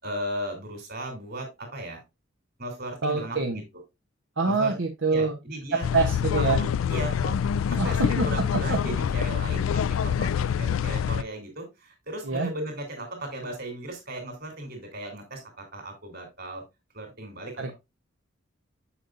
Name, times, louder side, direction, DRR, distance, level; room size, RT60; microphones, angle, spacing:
voice 1, 0.0-2.0 2.6-3.6 4.5-4.7 5.1-5.9 6.3-16.6 16.9-17.7, right 1 dB, 50° right, 4 dB, 3.4 m, -36 dB
voice 2, 3.0-3.6 4.4-5.4 5.7-6.6 7.8-8.3 8.7-8.8 12.2-12.5 17.6-17.7, right 4 dB, 70° right, 3 dB, 0.9 m, -25 dB
sound 1, 5.8-11.2, left 8 dB, 90° left, 0.4 m, -26 dB
7.1 x 7.0 x 2.5 m, 0.22 s
head